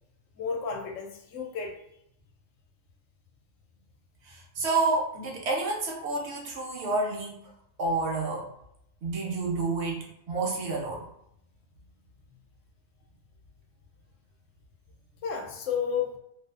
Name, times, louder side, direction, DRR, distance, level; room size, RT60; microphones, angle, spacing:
voice 1, 0.4-1.8 15.2-16.2, left 6 dB, 75° left, 2 dB, 0.9 m, -32 dB
voice 2, 4.3-7.4 7.8-8.5 9.0-11.0, right 3 dB, 60° right, -1 dB, 0.9 m, -29 dB
2.5 x 2.3 x 2.4 m, 0.77 s
omnidirectional pair, 1.4 m